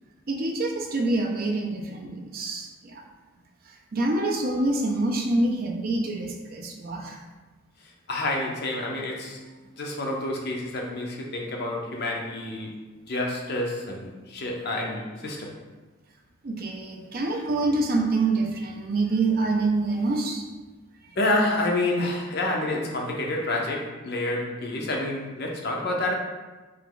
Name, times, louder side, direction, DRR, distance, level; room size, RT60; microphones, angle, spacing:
voice 1, 0.3-3.0 3.7-7.2 16.4-20.4, right 2 dB, 45° right, 2 dB, 0.4 m, -26 dB
voice 2, 8.1-9.4 9.7-12.7 13.1-15.5 21.2-26.1, left 2 dB, 45° left, -1 dB, 0.6 m, -28 dB
3.3 x 2.9 x 3.7 m, 1.2 s
head